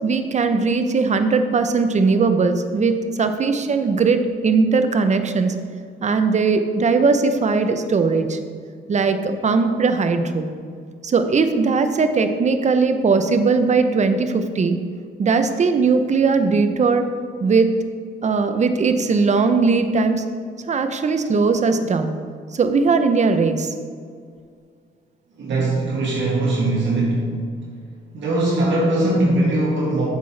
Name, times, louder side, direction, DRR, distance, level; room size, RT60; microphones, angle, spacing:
voice 1, 0.0-5.6 6.0-8.4 8.9-10.5 11.0-14.8 15.2-17.1 17.4-17.7 18.2-20.2 20.7-22.1 22.5-23.7, right 4 dB, 35° right, 8 dB, 0.7 m, -19 dB
voice 2, 25.4-27.3 28.1-30.1, right 2 dB, 65° right, -4 dB, 1.8 m, -20 dB
8.3 x 7.4 x 3.3 m, 2.1 s
cardioid pair, 90°, 20 cm